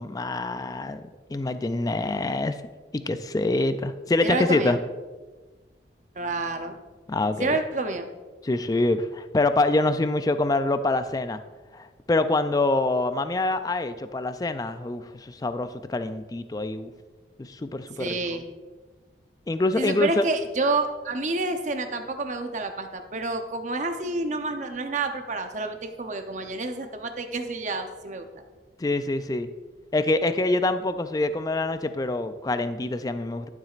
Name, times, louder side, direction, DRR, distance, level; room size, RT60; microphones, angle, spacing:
voice 1, 0.0-2.6 2.9-4.8 7.1-7.6 8.4-11.4 11.7-16.9 17.4-18.2 19.5-20.2 28.8-29.5 29.9-33.5, left 2 dB, 20° left, 10 dB, 0.3 m, -25 dB
voice 2, 4.2-4.8 6.2-6.7 7.4-8.1 18.0-18.5 19.7-28.3, right 3 dB, 40° right, 6 dB, 0.7 m, -29 dB
12.0 x 7.3 x 2.5 m, 1.3 s
head